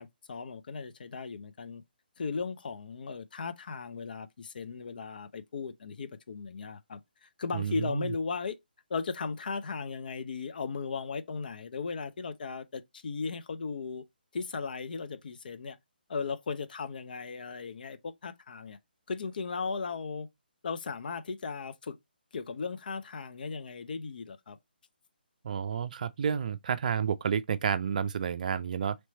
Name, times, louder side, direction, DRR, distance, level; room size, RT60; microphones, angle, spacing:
voice 1, 0.0-1.8 2.2-8.6 8.9-14.0 14.3-15.8 16.1-18.8 19.1-20.3 20.6-22.0 22.3-24.6, left 5 dB, 60° left, 0.5 m, -37 dB
voice 2, 7.5-8.1 25.4-29.0, right 7 dB, 50° right, 0.4 m, -30 dB
3.1 x 3.0 x 4.2 m
figure-of-eight pair, 145°, 6 cm